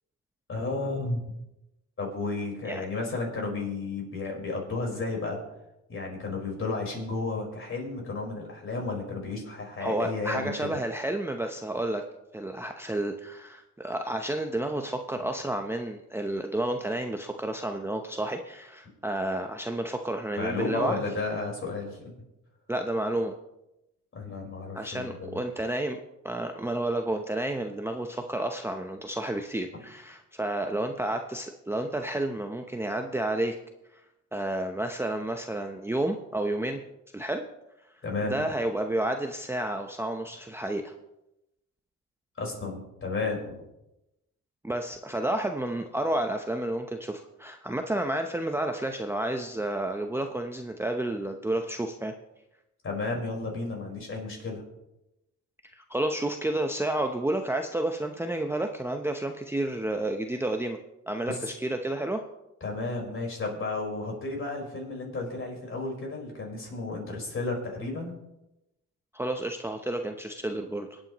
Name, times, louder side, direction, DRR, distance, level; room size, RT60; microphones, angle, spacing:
voice 1, 0.5-1.2 2.0-5.4 5.9-10.7 20.4-22.1 24.1-25.4 38.0-38.5 42.4-43.6 52.8-54.6 61.3-61.5 62.6-68.2, left 3 dB, 45° left, 0 dB, 4.5 m, -33 dB
voice 2, 9.8-12.0 12.3-21.0 22.7-23.4 24.7-26.0 26.2-33.6 34.3-36.8 37.1-37.5 38.2-40.9 44.6-52.1 55.7-60.8 61.1-62.2 69.1-71.0, right 1 dB, 10° right, 4 dB, 0.7 m, -30 dB
24.5 x 8.9 x 3.0 m, 0.91 s
cardioid pair, 90°, 30 cm